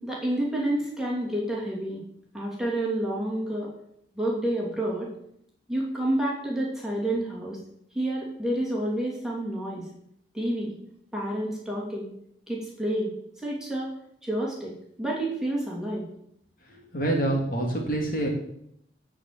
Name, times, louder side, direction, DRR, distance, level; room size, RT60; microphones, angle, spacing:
voice 1, 0.0-2.0 2.3-3.7 4.1-5.1 5.7-7.6 7.9-9.8 10.3-10.7 11.1-12.1 12.5-13.1 13.4-13.9 14.2-14.7 15.0-16.0, right 1 dB, 5° right, -4 dB, 2.7 m, -29 dB
voice 2, 16.9-18.3, right 1 dB, 50° left, 0 dB, 2.4 m, -26 dB
12.5 x 5.0 x 7.5 m, 0.73 s
head